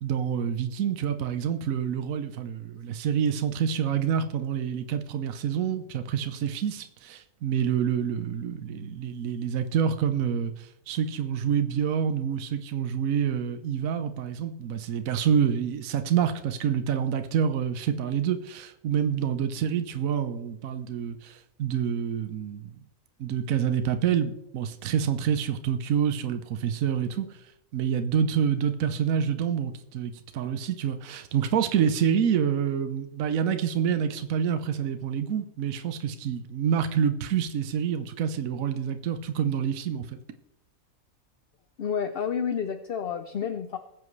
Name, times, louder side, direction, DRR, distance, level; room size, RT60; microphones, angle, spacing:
voice 1, 0.0-22.7 23.2-27.3 27.7-40.2, right 8 dB, 70° right, 1.2 m, -27 dB
voice 2, 41.8-43.8, left 7 dB, 60° left, 0.6 m, -30 dB
20.5 x 7.5 x 3.2 m
omnidirectional pair, 1.6 m